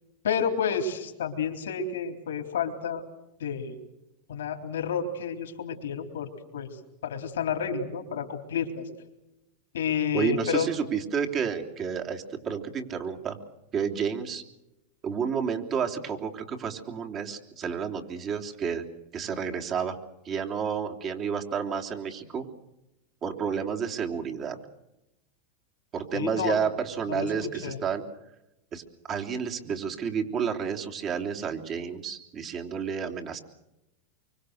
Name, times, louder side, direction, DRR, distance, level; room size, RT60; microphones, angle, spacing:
voice 1, 0.2-3.0 3.4-3.8 4.3-6.7 7.0-8.9 9.7-10.7 26.1-26.6 27.1-27.8, left 7 dB, 90° left, 4 dB, 3.7 m, -30 dB
voice 2, 10.1-13.4 13.7-14.4 15.0-18.8 19.1-20.0 20.2-22.4 23.2-24.6 25.9-28.0 28.7-28.8 29.1-33.4, right 7 dB, 35° right, 3 dB, 3.3 m, -30 dB
25.0 x 24.5 x 6.6 m, 0.90 s
hypercardioid pair, 110°, 0 cm